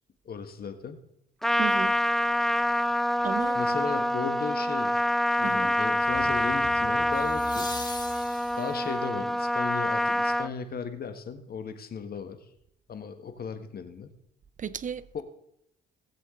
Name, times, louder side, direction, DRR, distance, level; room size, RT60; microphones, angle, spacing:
voice 1, 0.2-1.0 3.5-5.1 5.4-7.7 8.6-12.4 12.9-14.2 15.1-15.2, left 6 dB, 50° left, 1.6 m, -36 dB
Trumpet, 1.4-10.5, left 1 dB, ahead, 0.4 m, -26 dB
voice 2, 1.6-2.0 3.2-3.6 5.4-5.7 14.6-15.1, right 8 dB, 40° right, 0.6 m, -34 dB
sound 1, 4.1-4.4 7.1-9.0 11.9-12.0, left 3 dB, 20° left, 2.1 m, -41 dB
sound 2, 6.0-9.1, left 4 dB, 65° left, 4.8 m, -46 dB
19.0 x 7.6 x 3.8 m
cardioid pair, 90°, 20 cm